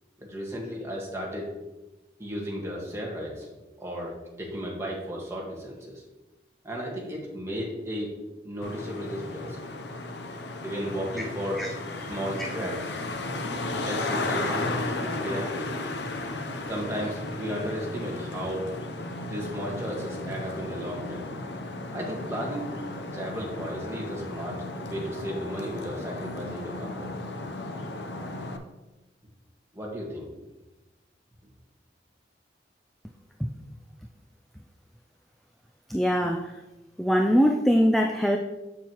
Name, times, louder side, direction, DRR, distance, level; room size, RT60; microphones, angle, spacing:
voice 1, 0.2-1.4 2.2-3.5 3.8-6.0 6.6-8.1 8.4-9.6 10.6-11.6 12.1-12.9 13.8-15.7 16.7-18.7 19.2-21.2 21.9-22.7 23.1-27.1 29.7-30.3, equal, 15° right, -3 dB, 1.6 m, -34 dB
Traffic noise roadway noise, 8.6-28.6, left 2 dB, 70° left, 0.7 m, -34 dB
voice 2, 35.9-36.5 37.0-38.4, equal, ahead, 2 dB, 0.3 m, -22 dB
7.3 x 6.9 x 3.0 m, 1.1 s
head